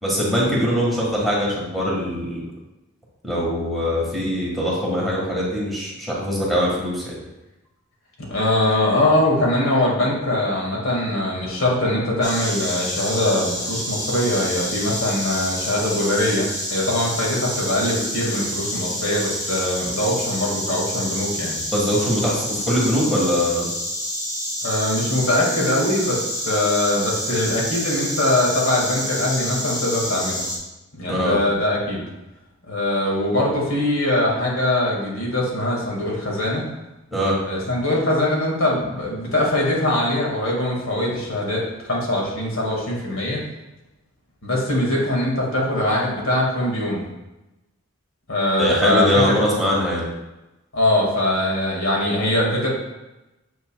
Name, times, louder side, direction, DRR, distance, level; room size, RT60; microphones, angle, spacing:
voice 1, 0.0-2.5 3.2-7.1 21.7-23.7 31.1-31.4 37.1-37.4 48.6-50.0, equal, ahead, -6 dB, 1.5 m, -22 dB
voice 2, 8.3-21.6 24.6-30.4 30.9-32.0 32.7-36.7 37.4-43.4 44.4-47.0 48.3-49.2 50.7-52.7, left 1 dB, 80° left, -3 dB, 1.9 m, -22 dB
Insect, 12.2-30.6, equal, 20° left, 2.1 m, -28 dB
7.4 x 5.8 x 2.3 m, 0.99 s
head